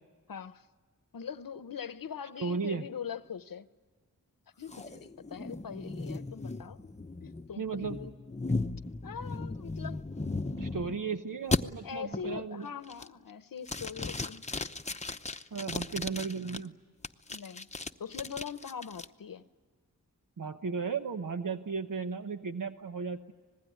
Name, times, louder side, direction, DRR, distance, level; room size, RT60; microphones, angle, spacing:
voice 1, 0.3-0.7 1.1-3.7 4.6-6.8 7.2-8.1 9.0-10.0 11.8-14.4 17.3-17.7 18.0-19.4, left 7 dB, 80° left, 13 dB, 0.9 m, -42 dB
voice 2, 2.4-2.9 7.6-8.0 10.6-12.7 15.5-16.8 20.4-23.3, right 5 dB, 70° right, 7 dB, 1.0 m, -35 dB
sound 1, 4.7-11.0 11.5-11.6 12.1-12.5 12.9-13.3 13.7-16.6 17.0-19.1, left 3 dB, 20° left, 0.8 m, -36 dB
26.0 x 20.0 x 9.4 m, 1.5 s
wide cardioid pair, 90°, 34 cm